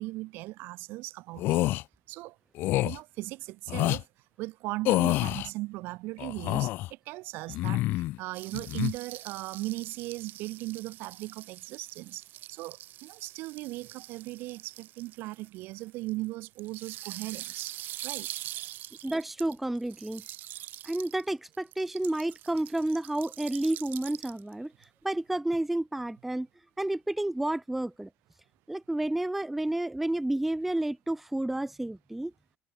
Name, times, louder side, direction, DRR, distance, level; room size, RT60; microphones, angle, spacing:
voice 1, 0.0-1.6 2.1-2.3 2.8-4.0 4.4-6.7 7.1-7.8 8.2-12.2 12.5-12.8 13.0-17.8 18.0-18.3, right 20 dB, 85° right, 1.3 m, -38 dB
sound 1, 1.4-1.8 2.6-3.0 3.7-4.0 4.8-5.5 6.2-6.9 7.5-8.2 8.5-8.9, left 17 dB, 70° left, 1.0 m, -27 dB
sound 2, 8.3-21.3 21.5-24.5 24.8-24.9, right 14 dB, 60° right, 1.2 m, -44 dB
voice 2, 19.0-20.2 20.8-24.7 25.0-26.5 26.8-28.1 28.7-32.3, right 1 dB, 5° right, 0.3 m, -30 dB
cardioid pair, 160°, 4 cm